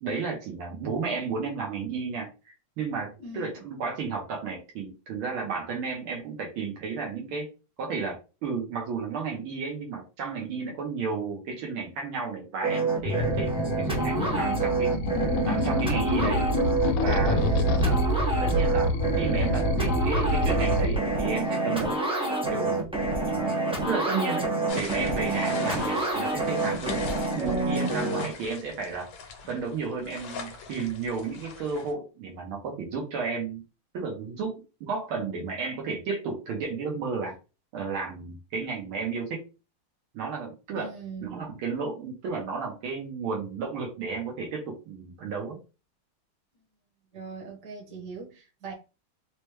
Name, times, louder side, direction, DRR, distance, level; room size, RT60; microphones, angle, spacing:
voice 1, 0.0-7.5 7.8-15.0 15.5-16.4 17.0-18.0 18.4-22.0 22.5-22.9 23.3-23.6 23.9-27.0 27.4-29.1 29.5-33.6 33.9-34.5 34.8-37.3 37.7-39.4 40.1-40.9 41.2-45.6, right 5 dB, 80° right, 1.7 m, -33 dB
voice 2, 3.2-3.6 17.3-18.0 40.8-41.5 47.1-48.7, right 3 dB, 55° right, 1.8 m, -41 dB
sound 1, 12.6-28.2, right 3 dB, 10° right, 0.3 m, -28 dB
sound 2, 13.1-21.0, left 1 dB, 90° left, 1.5 m, -27 dB
sound 3, 24.7-31.9, left 5 dB, 70° left, 1.6 m, -41 dB
4.7 x 2.2 x 3.1 m
omnidirectional pair, 2.3 m